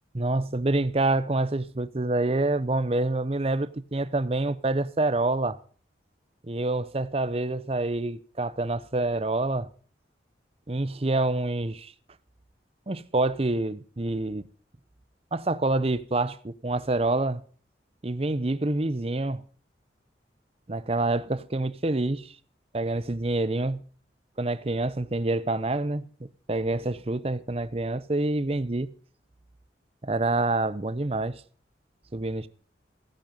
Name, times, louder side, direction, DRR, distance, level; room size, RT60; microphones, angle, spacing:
voice 1, 0.1-5.6 6.4-9.7 10.7-11.9 12.9-14.4 15.3-17.4 18.0-19.4 20.7-22.4 22.7-23.8 24.4-26.1 26.5-28.9 30.0-31.4 32.1-32.5, right 2 dB, 35° right, 0.7 m, -27 dB
16.0 x 10.5 x 5.4 m
head